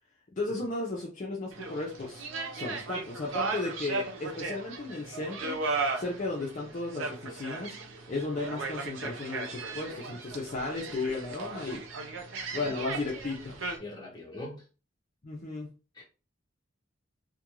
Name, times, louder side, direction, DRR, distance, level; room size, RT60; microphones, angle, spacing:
voice 1, 0.4-2.2 2.5-5.6 6.0-7.8 8.1-11.8 12.5-13.6 15.2-15.7, left 3 dB, 40° left, 0.5 m, -34 dB
sound 1, 1.5-13.8, right 3 dB, 80° right, 0.5 m, -36 dB
voice 2, 13.8-14.6 15.9-16.0, left 1 dB, 20° left, 0.8 m, -41 dB
2.4 x 2.2 x 3.0 m
head